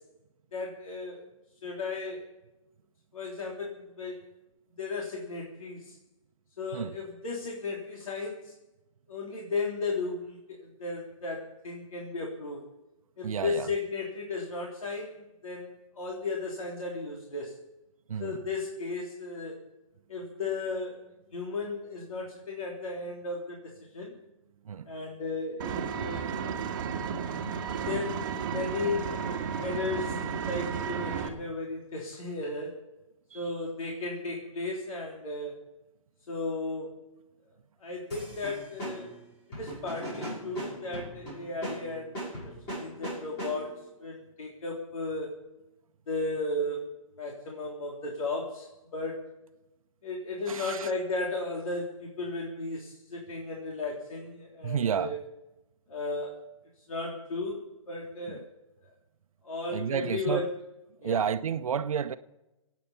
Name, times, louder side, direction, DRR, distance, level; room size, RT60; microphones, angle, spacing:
voice 1, 0.5-1.3 1.6-2.3 3.1-4.3 4.8-6.0 6.6-8.5 9.1-12.6 13.2-17.5 18.2-19.6 20.1-21.1 21.3-24.1 24.9-26.3 27.9-29.1 29.6-32.8 33.3-35.6 36.3-37.0 37.8-39.1 39.6-45.4 46.1-49.3 50.0-55.2 55.9-56.4 56.9-58.4 58.8-58.9 59.4-60.5 61.0-61.2, left 3 dB, 85° left, 3.6 m, -35 dB
voice 2, 13.2-13.7 18.1-18.4 24.6-24.9 33.3-33.5 50.5-50.9 54.6-55.2 58.3-58.4 59.7-60.5 61.0-62.1, right 7 dB, 90° right, 0.8 m, -31 dB
Vehicle, 25.6-31.3, right 6 dB, 35° right, 1.7 m, -33 dB
sound 1, 38.1-43.9, right 1 dB, 20° left, 6.4 m, -39 dB
24.5 x 9.3 x 5.6 m
hypercardioid pair, 170°, 17 cm